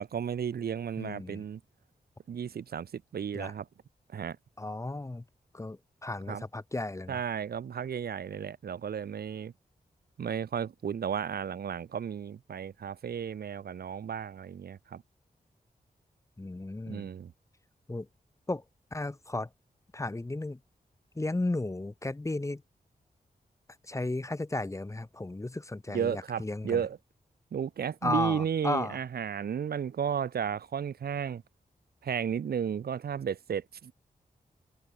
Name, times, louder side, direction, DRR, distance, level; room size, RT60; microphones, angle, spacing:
voice 1, 0.0-1.6 2.3-3.7 4.1-4.4 6.3-6.4 7.1-9.5 10.2-15.0 16.9-17.3 25.9-27.0 27.5-31.4 32.0-33.9, right 8 dB, 80° right, 0.9 m, -33 dB
voice 2, 1.0-1.4 3.3-3.5 4.6-5.2 5.5-7.2 16.4-17.1 17.9-18.1 18.5-18.6 18.9-19.5 19.9-20.6 21.1-22.6 23.9-26.8 28.0-29.0, left 2 dB, 20° left, 1.1 m, -34 dB
wide cardioid pair, 100°, 16 cm